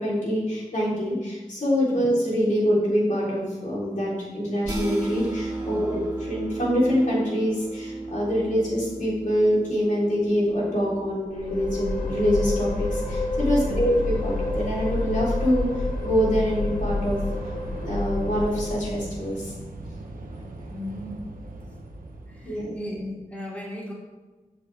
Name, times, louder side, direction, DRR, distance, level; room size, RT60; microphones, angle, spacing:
voice 1, 0.0-15.6 16.0-17.2 17.8-19.5 22.4-22.7, equal, 65° left, -6 dB, 3.5 m, -25 dB
sound 1, 4.6-11.1, right 2 dB, 25° right, 2.3 m, -34 dB
voice 2, 5.6-6.0 13.6-13.9 20.7-21.3 22.3-23.9, left 1 dB, 10° left, -5 dB, 3.2 m, -37 dB
Train / Subway metro underground, 10.0-22.6, right 2 dB, 90° right, 1.2 m, -40 dB
sound 2, 11.3-19.2, left 2 dB, 80° left, 1.7 m, -29 dB
13.5 x 7.3 x 3.5 m, 1.2 s
wide cardioid pair, 60°, 14 cm